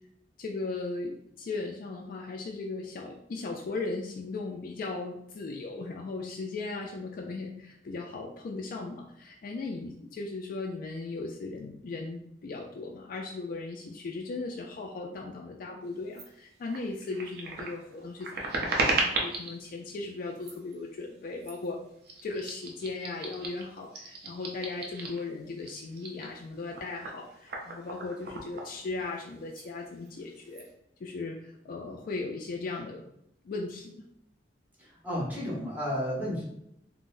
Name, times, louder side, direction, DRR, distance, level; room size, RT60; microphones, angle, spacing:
voice 1, 0.4-21.8 22.2-30.6 31.0-33.0 33.4-34.0, left 3 dB, 50° left, 0 dB, 0.3 m, -37 dB
sound 1, 16.1-16.3 16.7-19.6 20.3-20.7 21.4-21.7 22.0-25.3 25.6-29.2 29.5-29.7 30.0-30.6, right 2 dB, 65° right, 0.6 m, -35 dB
voice 2, 34.8-36.5, equal, 10° right, -6 dB, 0.9 m, -32 dB
3.9 x 2.0 x 2.4 m, 0.76 s
head